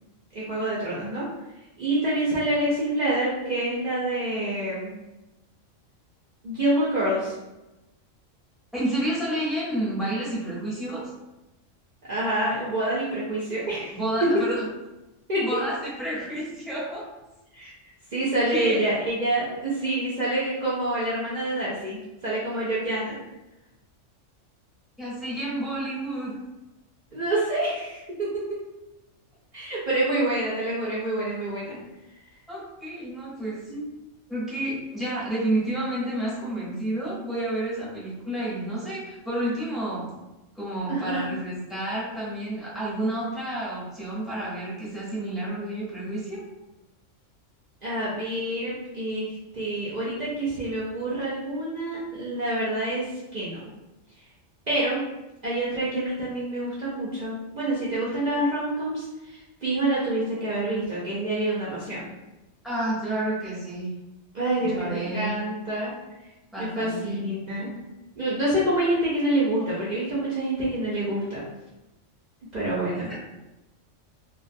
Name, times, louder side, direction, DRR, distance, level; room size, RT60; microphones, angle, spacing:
voice 1, 0.3-1.3 1.8-4.9 6.4-7.3 12.1-14.0 15.3-15.4 17.5-17.7 18.1-23.2 27.1-28.6 29.5-31.8 33.7-33.8 40.9-41.2 47.8-53.7 54.7-55.0 55.4-62.1 64.3-65.9 66.6-67.7 68.2-71.4 72.5-73.2, right 1 dB, 55° right, -8 dB, 0.5 m, -27 dB
voice 2, 8.7-11.0 13.9-14.7 15.4-17.0 18.5-18.9 25.0-26.3 32.5-33.6 34.3-40.1 40.6-46.4 62.6-63.9 64.6-65.4 66.5-67.3 73.1-73.2, right 1 dB, ahead, -8 dB, 0.6 m, -30 dB
2.3 x 2.2 x 2.5 m, 1.0 s
omnidirectional pair, 1.3 m